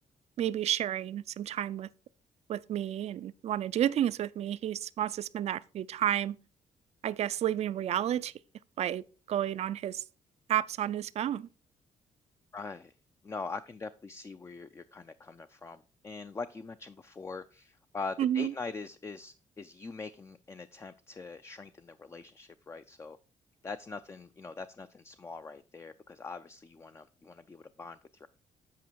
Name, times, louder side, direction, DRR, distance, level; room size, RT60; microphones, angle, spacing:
voice 1, 0.4-1.9 2.5-6.4 7.0-8.3 8.8-10.0 10.5-11.5 18.2-18.5, right 11 dB, 55° right, 0.4 m, -31 dB
voice 2, 12.5-12.9 13.2-23.2 23.6-28.3, left 4 dB, 20° left, 0.4 m, -43 dB
8.4 x 4.9 x 4.5 m
cardioid pair, 110°, 13 cm